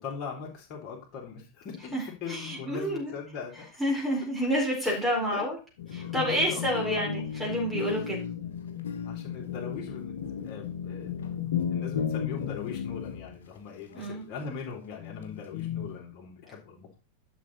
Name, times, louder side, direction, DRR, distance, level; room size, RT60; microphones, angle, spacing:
voice 1, 0.0-1.9 2.2-3.7 4.8-5.5 6.0-6.2 6.5-7.1 7.8-8.0 9.0-11.2 11.7-16.9, left 6 dB, 35° left, -2 dB, 3.5 m, -40 dB
voice 2, 2.3-3.1 3.8-5.6 5.9-8.2 13.9-14.2, equal, 10° right, -2 dB, 4.2 m, -29 dB
sound 1, 5.8-13.4 14.4-14.6 15.0-16.0, left 8 dB, 60° left, 1.6 m, -34 dB
11.5 x 6.2 x 4.1 m, 0.32 s
figure-of-eight pair, 90°, 0 cm